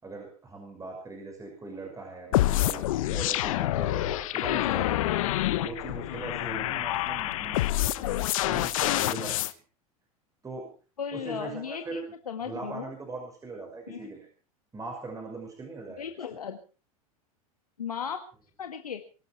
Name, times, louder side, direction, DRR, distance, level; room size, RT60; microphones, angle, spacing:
voice 1, 0.0-9.6 10.4-10.7 11.1-12.0 12.4-14.3 14.7-16.1 16.3-16.4, right 3 dB, 15° right, 2 dB, 6.0 m, -40 dB
sound 1, 2.3-9.5, left 15 dB, 65° left, 1.2 m, -27 dB
voice 2, 11.0-12.9 13.9-14.1 16.0-16.6 17.8-18.2 18.6-19.0, left 7 dB, 80° left, 6 dB, 1.7 m, -36 dB
23.5 x 13.0 x 4.6 m, 0.38 s
figure-of-eight pair, 85°, 19 cm